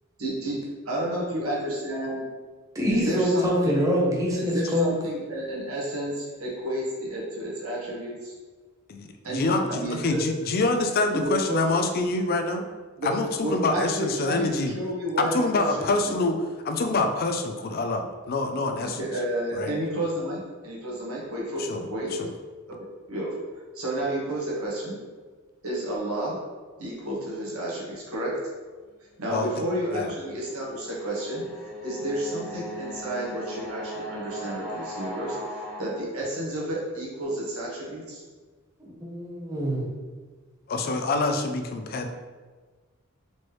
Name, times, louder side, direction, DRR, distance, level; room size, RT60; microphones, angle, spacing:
voice 1, 0.2-0.6 0.8-2.2 2.9-3.8 4.4-8.3 9.2-9.4 9.7-10.2 11.1-11.6 13.0-13.1 13.4-14.5 14.7-16.3 19.0-22.1 23.1-23.3 23.7-25.0 25.6-26.4 26.8-28.4 29.2-31.4 31.8-35.4 35.8-38.2, right 1 dB, 90° right, -5 dB, 1.3 m, -31 dB
voice 2, 2.7-4.9 38.8-39.8, equal, 15° right, -4 dB, 0.8 m, -25 dB
voice 3, 9.3-12.6 13.0-14.7 15.2-16.3 16.6-19.0 19.5-19.7 21.6-21.9 22.2-22.3 29.3-29.5 29.9-30.1 40.7-42.1, left 3 dB, 45° left, 6 dB, 0.4 m, -26 dB
sound 1, 29.2-35.8, equal, 5° left, 1.5 m, -38 dB
4.3 x 3.0 x 3.1 m, 1.4 s
head